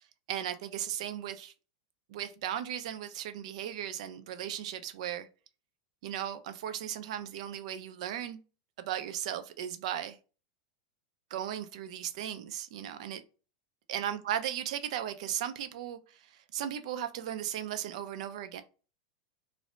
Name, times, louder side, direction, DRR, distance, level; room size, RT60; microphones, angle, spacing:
voice 1, 0.3-1.5 2.1-5.3 6.0-8.4 8.8-10.2 11.3-13.2 13.9-18.6, right 10 dB, 70° right, 0.4 m, -36 dB
2.5 x 2.0 x 3.0 m
supercardioid pair, 155°, 4 cm